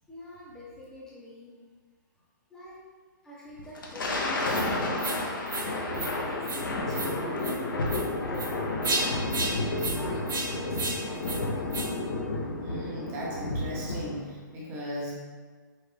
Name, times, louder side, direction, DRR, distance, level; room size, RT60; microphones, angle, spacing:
voice 1, 0.1-1.6 2.5-2.8 3.2-11.9, left 1 dB, 5° left, -6 dB, 0.8 m, -46 dB
Thunder, 3.6-14.3, left 2 dB, 85° left, 0.8 m, -31 dB
sound 1, 4.5-4.7 5.0-5.2 5.5-5.7 5.9-6.1 6.4-6.6 6.9-7.1 7.4-7.5 7.9-8.0 8.3-8.5 8.8-9.0 9.3-9.5 9.8-10.0 10.3-10.5 10.7-11.0 11.2-11.4 11.7-11.9, right 3 dB, 85° right, 1.1 m, -32 dB
voice 2, 12.6-15.1, equal, 25° right, -5 dB, 1.1 m, -37 dB
5.2 x 2.5 x 3.3 m, 1.5 s
hypercardioid pair, 155°, 11 cm